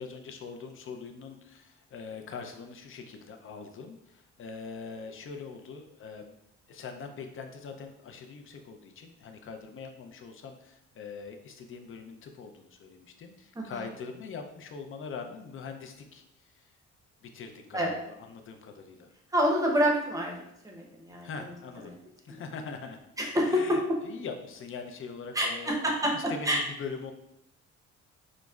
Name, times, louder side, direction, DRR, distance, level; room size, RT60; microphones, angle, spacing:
voice 1, 0.0-6.4 6.7-16.7 17.2-19.1 21.2-21.9 22.2-23.0 23.4-25.8 26.1-27.1, left 5 dB, 45° left, 5 dB, 0.5 m, -42 dB
voice 2, 19.3-20.4 20.6-21.3 22.3-22.4 23.2-24.0 25.3-26.1 26.4-26.6, equal, 10° right, -1 dB, 0.8 m, -27 dB
4.9 x 2.0 x 2.3 m, 0.81 s
cardioid pair, 90°, 30 cm